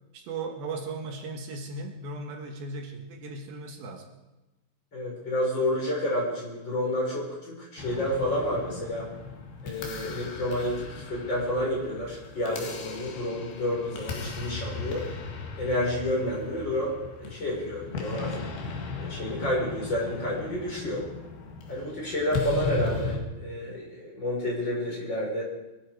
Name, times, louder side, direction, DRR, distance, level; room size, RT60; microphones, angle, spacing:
voice 1, 0.1-4.1, right 3 dB, 75° right, 3 dB, 3.2 m, -37 dB
voice 2, 4.9-9.1 9.6-15.1 15.6-18.5 19.0-21.1 21.7-25.4, left 1 dB, 30° left, -3 dB, 5.3 m, -30 dB
sound 1, 7.8-23.2, left 3 dB, 85° left, 4.0 m, -37 dB
23.0 x 13.0 x 4.7 m, 1.0 s
omnidirectional pair, 4.5 m